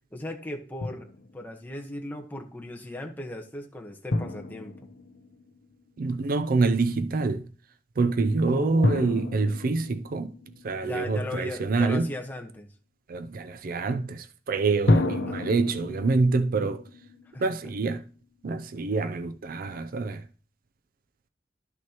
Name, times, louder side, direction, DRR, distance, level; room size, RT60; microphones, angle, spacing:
voice 1, 0.1-4.8 8.5-9.3 10.8-12.7 15.3-15.6 17.3-17.4, left 1 dB, 10° left, 1.1 m, -38 dB
Drum, 0.8-1.6 4.1-5.9 8.8-11.3 14.9-18.0, left 2 dB, 80° left, 0.8 m, -30 dB
voice 2, 6.0-7.5 8.0-10.3 10.6-12.1 13.1-16.9 17.4-18.0 18.4-20.3, right 3 dB, 55° right, 0.4 m, -26 dB
12.0 x 6.1 x 2.9 m
head